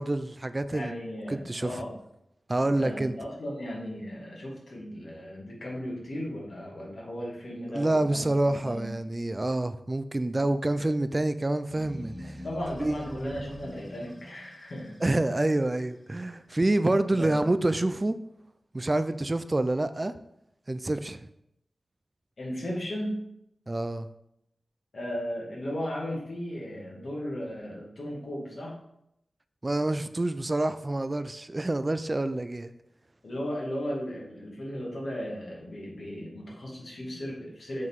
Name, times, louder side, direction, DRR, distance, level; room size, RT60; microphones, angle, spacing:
voice 1, 0.0-0.9 1.3-1.8 2.5-3.1 7.7-12.4 12.8-13.2 15.0-18.2 18.7-20.1 20.7-21.2 23.7-24.1 29.6-32.7, right 2 dB, 30° right, 11 dB, 0.4 m, -27 dB
voice 2, 0.7-2.0 2.6-8.9 12.4-15.0 17.1-17.4 22.4-23.2 24.9-28.7 33.2-37.9, equal, 70° left, -3 dB, 2.2 m, -36 dB
sound 1, 11.7-16.1, equal, 30° left, 2.0 m, -44 dB
7.5 x 3.9 x 4.6 m, 0.79 s
cardioid pair, 55°, 0 cm